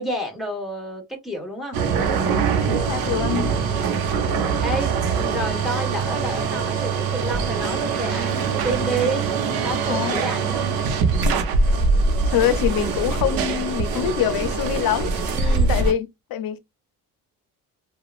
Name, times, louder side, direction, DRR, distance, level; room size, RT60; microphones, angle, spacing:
voice 1, 0.0-1.8 3.7-4.0 4.4-9.3 9.6-10.8 15.3-15.8, right 1 dB, ahead, 1.3 m, -30 dB
sound 1, 1.7-15.9, right 4 dB, 85° right, 0.7 m, -23 dB
voice 2, 2.7-3.5 9.9-10.2 12.3-15.1 15.4-16.6, left 10 dB, 75° left, 0.6 m, -24 dB
3.0 x 2.2 x 2.3 m
cardioid pair, 95°, 35 cm